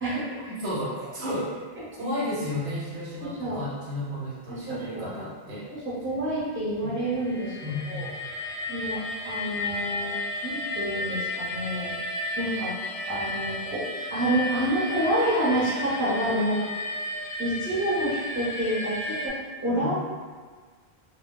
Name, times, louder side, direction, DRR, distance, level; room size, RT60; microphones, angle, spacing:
voice 1, 0.0-0.5 3.2-3.6 4.5-5.1 5.7-7.6 7.8-8.1 8.7-10.1 10.4-12.0 12.4-12.8 13.1-16.6 17.4-19.9, right 1 dB, 15° right, -10 dB, 0.9 m, -28 dB
voice 2, 0.6-1.5 2.0-5.7 6.8-6.9 7.6-8.1 19.7-19.9, left 1 dB, 85° right, -6 dB, 1.0 m, -32 dB
sound 1, 7.1-19.3, left 1 dB, 60° left, 0.7 m, -33 dB
2.2 x 2.2 x 3.8 m, 1.5 s
omnidirectional pair, 1.1 m